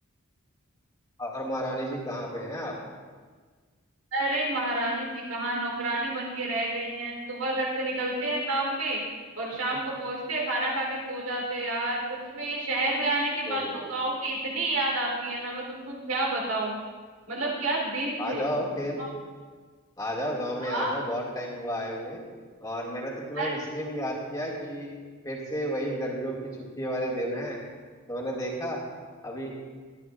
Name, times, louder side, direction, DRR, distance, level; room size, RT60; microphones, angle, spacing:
voice 1, 1.2-2.8 13.5-13.9 18.2-19.0 20.0-22.2 22.6-24.9 25.2-27.6 28.1-28.9 29.2-29.5, equal, 15° left, -3 dB, 2.2 m, -32 dB
voice 2, 4.1-9.0 9.4-16.8 17.3-18.5 19.0-19.1 20.6-20.9 23.3-23.6, right 2 dB, 90° right, -2 dB, 3.7 m, -29 dB
24.0 x 10.5 x 2.5 m, 1.5 s
head